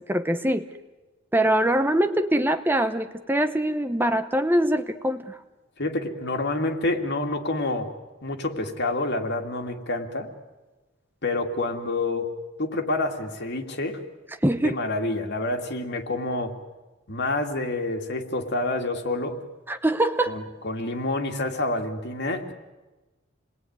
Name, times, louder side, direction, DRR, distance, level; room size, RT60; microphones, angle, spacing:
voice 1, 0.1-0.7 1.3-5.4 14.4-14.8 19.7-20.4, right 1 dB, 10° right, 9 dB, 0.9 m, -23 dB
voice 2, 5.8-7.9 8.2-10.3 11.2-12.3 12.6-14.0 14.6-16.5 17.1-19.4 20.3-22.5, left 2 dB, 60° left, 4 dB, 2.5 m, -28 dB
28.5 x 21.0 x 9.5 m, 1.2 s
head